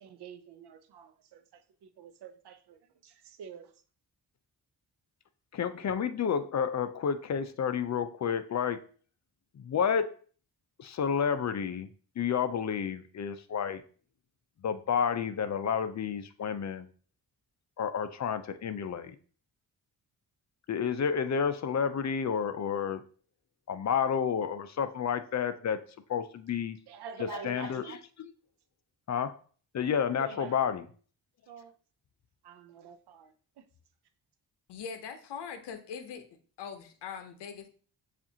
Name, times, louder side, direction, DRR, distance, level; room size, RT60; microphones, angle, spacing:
voice 1, 0.0-3.7 26.9-28.0 30.2-30.6 31.5-31.7 32.4-33.7, right 7 dB, 70° right, 0.6 m, -47 dB
voice 2, 5.5-8.8 9.6-10.2 10.8-11.9 12.2-13.8 14.6-16.9 17.8-19.2 20.7-23.0 23.7-25.8 26.1-26.8 27.2-28.0 29.1-29.3 29.7-30.8, left 7 dB, 45° left, 0.5 m, -30 dB
voice 3, 34.7-36.3 36.6-37.7, left 7 dB, 80° left, 0.7 m, -41 dB
7.0 x 2.5 x 2.7 m
cardioid pair, 80°, 41 cm